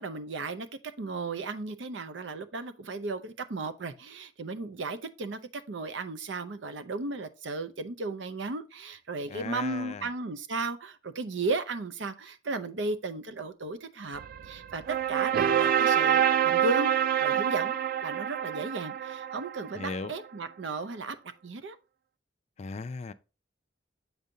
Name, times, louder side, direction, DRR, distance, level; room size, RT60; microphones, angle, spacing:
voice 1, 0.0-16.9 17.2-17.8 18.0-21.2 21.4-21.8, right 3 dB, 80° right, 0.6 m, -35 dB
voice 2, 9.3-10.1 19.8-20.1 22.6-23.1, left 4 dB, 35° left, 0.4 m, -37 dB
sound 1, 14.1-20.1, right 9 dB, 50° right, 0.3 m, -27 dB
7.2 x 5.2 x 2.7 m
head